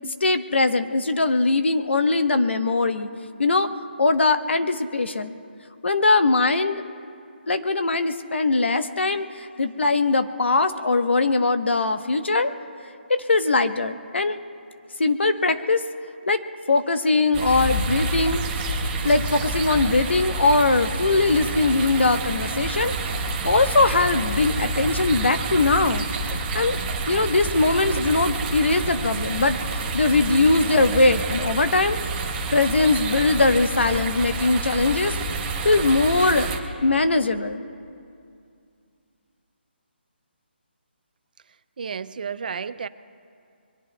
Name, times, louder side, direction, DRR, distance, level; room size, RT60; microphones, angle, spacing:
voice 1, 0.2-3.1 3.4-3.7 4.0-5.3 5.8-6.8 7.5-12.5 13.1-14.4 15.0-15.8 16.3-16.4 16.7-18.4 19.0-26.8 27.1-32.0 32.5-35.1 35.6-36.5 36.8-37.6, left 3 dB, 90° left, 1.0 m, -21 dB
Regents Park - Water falls into stream, 17.3-36.6, right 3 dB, 15° right, 1.1 m, -28 dB
voice 2, 41.8-42.9, right 6 dB, 50° right, 0.5 m, -31 dB
28.0 x 22.5 x 2.3 m
hypercardioid pair, 165°, 6 cm